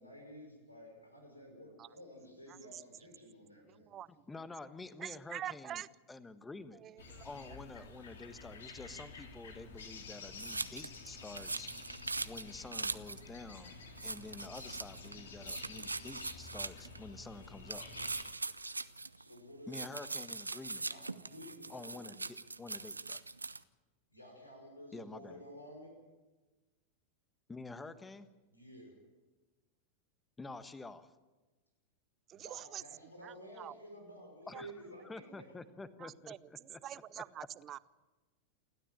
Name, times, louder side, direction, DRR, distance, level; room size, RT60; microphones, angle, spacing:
voice 1, 0.0-3.9 19.2-19.7 20.8-22.1 24.1-25.9 28.5-28.9 32.3-35.5, equal, 85° left, 2 dB, 5.6 m, -52 dB
voice 2, 2.5-2.8 3.6-4.2 5.0-5.9 6.8-7.3 32.3-32.8 33.2-33.8 34.5-34.6 36.0-36.4 36.8-37.8, right 11 dB, 30° right, 20 dB, 0.6 m, -45 dB
voice 3, 4.3-5.8 6.1-6.8 7.2-12.0 12.2-17.9 19.7-20.9 21.7-23.2 24.9-25.4 27.5-28.3 30.4-31.1 34.5-34.7 35.0-37.5, left 3 dB, 10° left, 13 dB, 1.4 m, -49 dB
sound 1, 7.0-18.2, left 4 dB, 65° left, 3.1 m, -50 dB
sound 2, 10.4-13.2 13.6-13.7 14.0-15.2 15.4-17.0 17.7-19.4 19.7-23.6, right 3 dB, 80° right, 0.7 m, -41 dB
28.5 x 13.0 x 9.0 m, 1.2 s
figure-of-eight pair, 90°, 0 cm